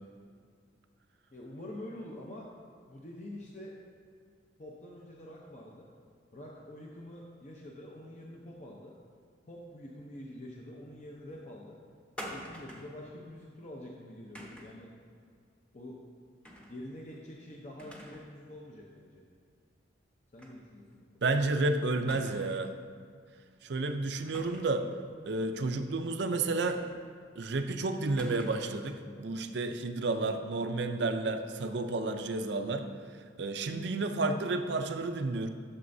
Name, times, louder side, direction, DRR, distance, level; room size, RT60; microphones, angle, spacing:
voice 1, 1.3-2.5 2.9-3.7 4.6-5.9 6.3-8.9 9.5-11.8 12.2-14.9 15.7-16.0 16.6-19.2 20.3-21.4, left 1 dB, 40° left, -2 dB, 0.7 m, -46 dB
sound 1, 12.2-13.0 14.4-14.8 16.4-16.8 17.1-17.2 17.8-18.3 18.7-18.8 20.4-20.6 20.9-21.0 22.1-22.7 24.3-24.8 26.7-27.2 28.2-28.8, equal, 5° left, 0.8 m, -46 dB
voice 2, 21.2-22.7 23.6-24.9 25.3-26.8 27.4-32.9 33.4-35.5, right 3 dB, 60° right, 7 dB, 0.5 m, -31 dB
12.5 x 6.8 x 2.7 m, 2.1 s
head